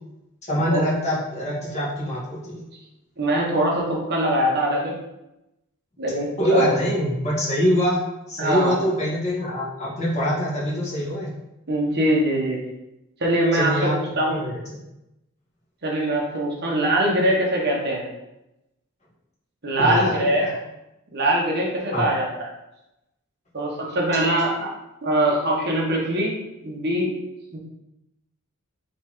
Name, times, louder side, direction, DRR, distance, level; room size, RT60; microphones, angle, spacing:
voice 1, 0.5-2.6 6.4-8.0 8.3-11.3 13.5-14.8 19.8-20.5 21.9-22.1, equal, 30° left, -7 dB, 1.5 m, -24 dB
voice 2, 3.2-4.9 6.0-6.7 8.4-8.7 11.7-12.6 13.2-14.4 15.8-18.0 19.6-20.5 21.1-22.3 23.5-24.7 25.0-26.3 26.6-27.1 27.5-27.6, right 1 dB, 50° right, -3 dB, 1.1 m, -22 dB
4.1 x 3.3 x 3.7 m, 0.91 s
head